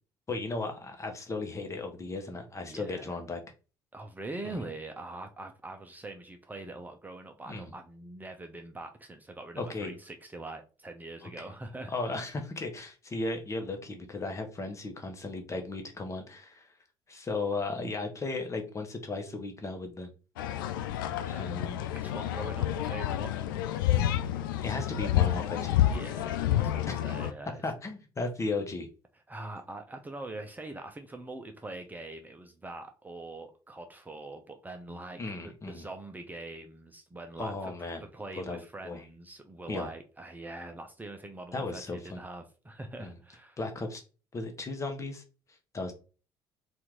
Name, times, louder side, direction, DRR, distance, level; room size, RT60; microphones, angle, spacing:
voice 1, 0.3-3.4 4.4-4.6 7.5-7.7 9.6-9.9 11.2-11.4 11.9-16.7 17.1-20.1 21.3-21.8 24.6-25.8 26.9-27.0 27.6-28.9 35.2-35.9 37.4-38.0 38.3-39.0 39.7-39.9 41.5-42.2 43.0-43.2 43.6-44.0 44.3-45.2 45.7-45.9, left 3 dB, 25° left, 1.1 m, -36 dB
voice 2, 2.6-3.2 3.9-12.2 21.1-21.6 21.9-23.4 25.9-27.6 29.3-37.7 38.0-43.6, right 2 dB, 15° right, 0.8 m, -43 dB
sound 1, 20.4-27.3, left 12 dB, 70° left, 0.4 m, -29 dB
4.4 x 2.7 x 3.7 m
figure-of-eight pair, 50°, 12 cm